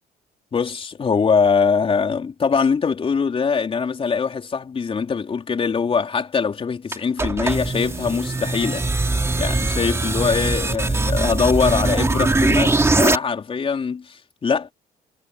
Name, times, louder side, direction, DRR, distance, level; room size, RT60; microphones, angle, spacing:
voice 1, 0.5-8.9 9.4-14.7, left 5 dB, 35° left, 4.0 m, -22 dB
sound 1, 6.9-13.2, right 3 dB, 15° right, 2.7 m, -21 dB
cardioid pair, 110°, 17 cm